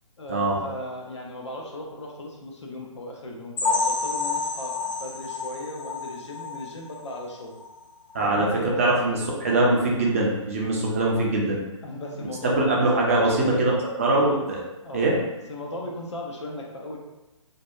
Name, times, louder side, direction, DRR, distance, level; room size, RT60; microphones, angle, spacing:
voice 1, 0.2-7.6 8.2-9.0 11.8-13.7 14.8-15.2 15.5-17.0, left 1 dB, 60° left, 0 dB, 0.6 m, -37 dB
sound 1, 3.6-7.2 7.6-7.7 8.1-8.2 8.7-8.8, left 4 dB, 40° left, 0.9 m, -29 dB
voice 2, 8.1-11.6 12.4-14.6 14.9-15.2, right 2 dB, 25° right, -2 dB, 0.3 m, -22 dB
2.6 x 2.2 x 2.3 m, 1.0 s
figure-of-eight pair, 130°, 17 cm